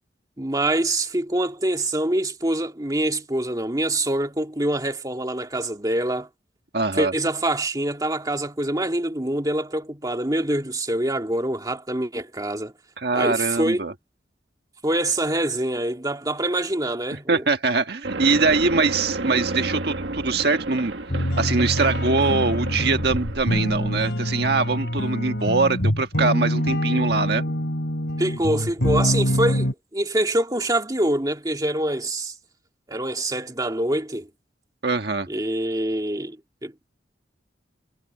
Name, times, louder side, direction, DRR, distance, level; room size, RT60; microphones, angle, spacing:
voice 1, 0.4-6.3 6.9-12.7 13.1-13.8 14.8-17.4 28.2-32.4 32.9-34.3 35.3-36.4 36.6-36.9, right 1 dB, 20° right, 1.9 m, -25 dB
voice 2, 6.7-7.1 13.0-13.9 17.3-20.9 21.2-27.4 34.8-35.3, right 3 dB, 60° right, 1.6 m, -23 dB
sound 1, 18.0-24.1, right 2 dB, 75° right, 1.7 m, -31 dB
sound 2, 21.1-29.7, equal, 75° left, 3.3 m, -25 dB
head